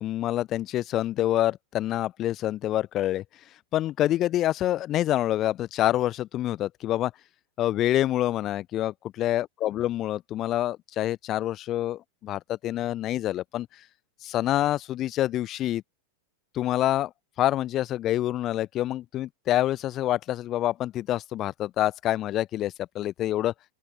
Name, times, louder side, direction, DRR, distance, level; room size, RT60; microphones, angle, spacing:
voice 1, 0.0-3.2 3.7-7.1 7.6-8.9 9.2-13.7 14.2-15.8 16.5-17.1 17.4-23.5, left 13 dB, 35° left, 0.8 m, -26 dB
open air
figure-of-eight pair, 90°, 0 cm